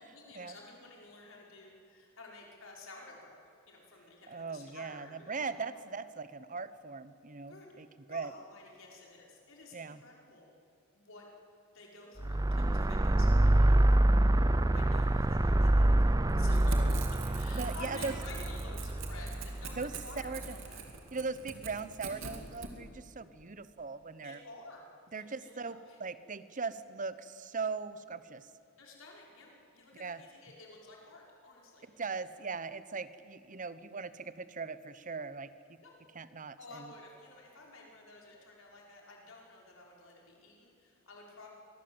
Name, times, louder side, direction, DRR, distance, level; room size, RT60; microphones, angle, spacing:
voice 1, 0.1-3.4 3.7-5.8 7.5-7.7 8.1-10.5 10.9-11.3 11.7-14.0 14.7-20.8 21.2-21.3 24.2-24.8 25.1-26.0 28.8-31.8 35.8-35.9 36.6-41.5, left 2 dB, 75° left, -1 dB, 5.3 m, -52 dB
voice 2, 4.3-8.3 9.7-10.0 17.5-18.1 19.8-19.9 20.2-20.6 21.1-24.4 25.1-28.5 30.0-30.2 32.0-35.5 36.1-36.9, right 4 dB, 40° right, 14 dB, 1.0 m, -39 dB
sound 1, 12.2-20.5, right 1 dB, 20° right, 0.6 m, -26 dB
Crackle / Tearing, 16.3-22.7, right 5 dB, 70° right, 2.8 m, -45 dB
25.0 x 20.0 x 8.0 m, 2.7 s
head